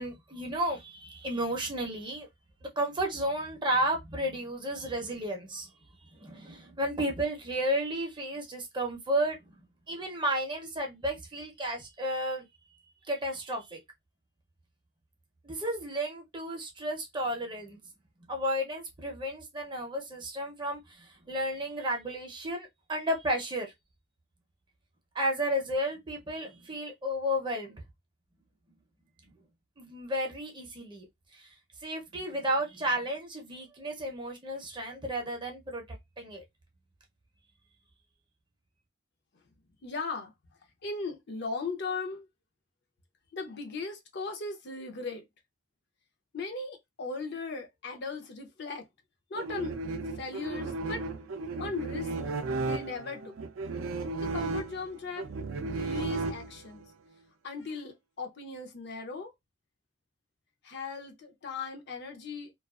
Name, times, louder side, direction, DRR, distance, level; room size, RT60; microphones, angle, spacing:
voice 1, 0.0-2.3 2.8-5.7 6.0-9.4 9.9-12.5 12.7-12.8 13.1-13.8 15.4-17.8 18.3-23.7 25.1-27.8 29.2-29.3 29.8-31.1 31.3-31.5 31.8-35.9 36.2-36.4, right 1 dB, 20° right, 0.6 m, -32 dB
voice 2, 39.8-40.3 40.8-42.3 43.3-45.2 46.3-48.9 49.3-49.8 50.1-51.1 51.6-53.4 54.2-55.3 55.6-56.9 57.4-59.3 60.6-62.5, left 4 dB, 50° left, 0.5 m, -38 dB
sound 1, 49.4-56.8, right 3 dB, 65° right, 0.4 m, -34 dB
2.3 x 2.3 x 2.3 m
head